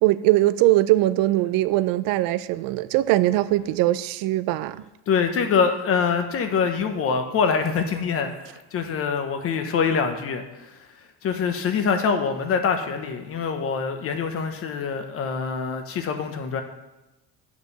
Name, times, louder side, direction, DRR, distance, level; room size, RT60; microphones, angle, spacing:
voice 1, 0.0-4.8, right 16 dB, 70° right, 0.5 m, -21 dB
voice 2, 5.1-10.4 11.2-16.6, left 6 dB, 40° left, 1.0 m, -24 dB
9.1 x 5.1 x 6.6 m
cardioid pair, 165°, 36 cm